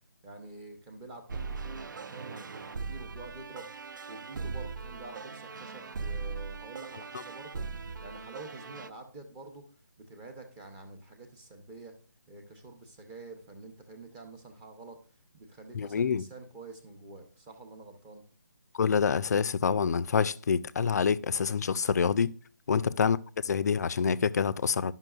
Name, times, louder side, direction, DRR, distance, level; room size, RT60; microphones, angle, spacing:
voice 1, 0.2-3.7 4.1-9.6 10.0-11.9 12.3-15.0 15.3-18.2 22.7-22.9, right 3 dB, 15° right, 0.7 m, -47 dB
sound 1, 1.3-8.9, right 4 dB, 70° right, 0.4 m, -39 dB
voice 2, 15.7-16.2 18.7-22.3 22.7-23.2 23.4-24.9, left 6 dB, 55° left, 0.4 m, -26 dB
10.5 x 5.7 x 2.3 m
figure-of-eight pair, 160°, 11 cm